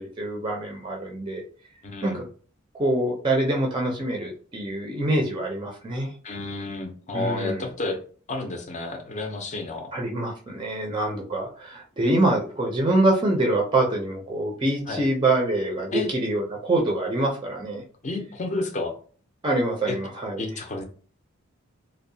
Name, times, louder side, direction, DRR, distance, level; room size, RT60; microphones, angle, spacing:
voice 1, 0.0-1.4 2.0-2.2 2.7-6.1 7.1-7.6 9.9-17.8 19.4-20.4, right 2 dB, 25° right, 0 dB, 0.5 m, -25 dB
voice 2, 1.8-2.2 6.2-8.0 8.3-9.9 14.9-15.1 15.9-16.1 18.0-19.0 19.9-20.0 20.4-20.8, left 2 dB, 35° left, 4 dB, 0.5 m, -31 dB
2.7 x 2.1 x 2.6 m, 0.41 s
head